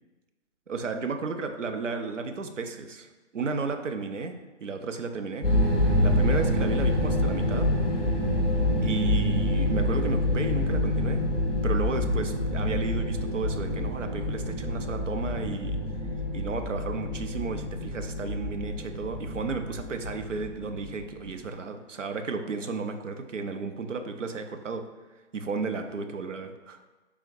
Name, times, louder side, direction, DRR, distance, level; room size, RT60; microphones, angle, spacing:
voice 1, 0.7-5.5 6.0-7.7 8.8-11.3 11.6-15.8 16.3-24.9 25.3-26.8, right 4 dB, 90° right, 7 dB, 0.7 m, -33 dB
sound 1, 5.4-21.3, left 1 dB, ahead, 1.3 m, -27 dB
5.9 x 3.5 x 2.6 m, 1.2 s
figure-of-eight pair, 140°, 36 cm